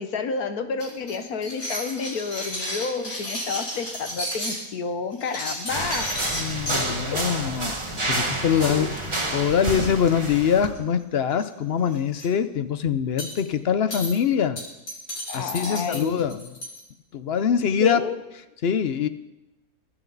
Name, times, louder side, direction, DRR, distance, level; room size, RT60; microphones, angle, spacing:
voice 1, 0.0-6.1 6.6-6.7 7.1-7.2 8.7-8.9 15.3-16.2 17.8-18.2, left 5 dB, 90° left, 8 dB, 1.6 m, -30 dB
sound 1, 0.8-4.6 5.1-6.8 7.3-7.5 7.8-7.9 8.2-8.3 8.5-9.9 10.6-11.0 11.3-11.5 11.8-12.3 13.2-13.4 13.9-14.1 14.6-16.8, equal, 70° left, 5.3 m, -33 dB
sound 2, 5.7-10.7, right 2 dB, 20° right, 1.4 m, -29 dB
voice 2, 6.3-7.7 8.1-8.9 9.3-14.6 15.3-16.5 17.1-18.0 18.6-19.1, left 8 dB, 55° left, 12 dB, 0.8 m, -23 dB
23.0 x 9.0 x 4.0 m, 0.98 s
omnidirectional pair, 1.5 m